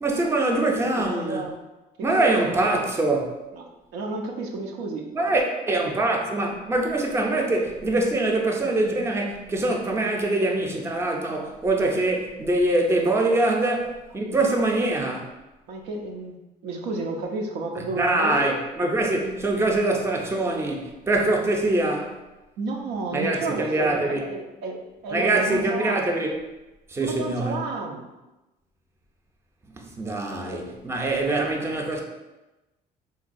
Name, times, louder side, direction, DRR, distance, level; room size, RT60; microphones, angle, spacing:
voice 1, 0.0-1.5 2.0-3.3 5.1-15.3 18.0-22.2 23.1-24.2 25.1-26.3 26.9-27.7 29.8-32.0, right 2 dB, 15° right, 1 dB, 0.5 m, -24 dB
voice 2, 1.1-1.5 2.1-2.9 3.5-5.3 13.2-13.4 15.7-16.3 16.6-18.4 22.6-26.1 27.0-28.0 30.4-30.6 31.2-31.3, right 3 dB, 85° right, 1 dB, 0.5 m, -32 dB
3.9 x 2.2 x 2.5 m, 1.0 s
cardioid pair, 110°, 17 cm